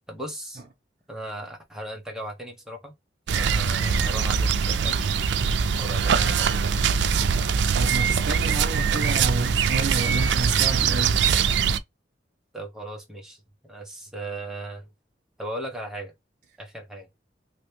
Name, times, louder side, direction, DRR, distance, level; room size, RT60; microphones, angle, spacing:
voice 1, 0.1-0.6 1.1-2.9 3.4-5.2 5.8-6.6 12.5-14.9 15.4-16.1 16.6-17.1, right 1 dB, 5° right, 1.0 m, -37 dB
sound 1, 3.3-11.8, right 6 dB, 80° right, 0.4 m, -22 dB
voice 2, 7.7-11.2, right 3 dB, 45° right, 0.7 m, -30 dB
3.0 x 2.9 x 3.1 m
head